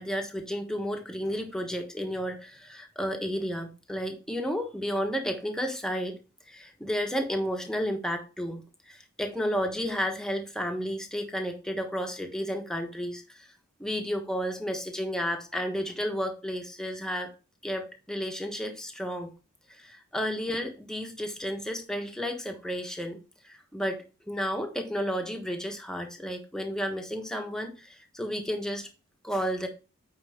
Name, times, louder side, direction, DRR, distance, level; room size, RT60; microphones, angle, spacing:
voice 1, 0.0-6.2 6.5-13.5 13.8-17.3 17.6-19.3 19.7-28.9 29.2-29.7, equal, 5° left, 4 dB, 1.1 m, -32 dB
8.9 x 4.8 x 3.5 m, 0.31 s
head